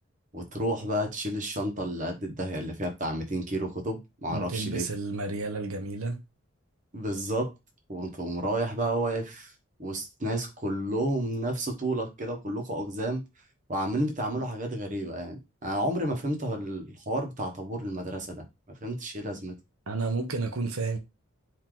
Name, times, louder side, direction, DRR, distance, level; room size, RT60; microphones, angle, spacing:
voice 1, 0.3-4.8 6.9-7.5 7.9-9.5 9.8-13.2 13.7-18.4 18.8-19.5, right 1 dB, 35° right, 1.1 m, -31 dB
voice 2, 4.3-6.2 19.9-21.0, right 3 dB, 90° right, 0.9 m, -31 dB
4.7 x 2.8 x 3.8 m
head